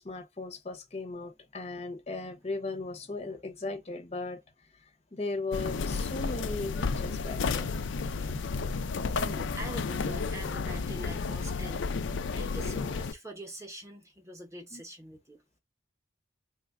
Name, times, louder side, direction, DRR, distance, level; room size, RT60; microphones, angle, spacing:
voice 1, 0.0-4.4 5.1-8.6 9.0-9.1 14.7-14.8, left 3 dB, 35° left, 0.6 m, -37 dB
sound 1, 5.5-13.1, left 4 dB, 80° left, 0.4 m, -32 dB
voice 2, 9.2-12.0 12.3-15.4, equal, 15° right, 0.7 m, -44 dB
3.1 x 2.2 x 3.5 m
head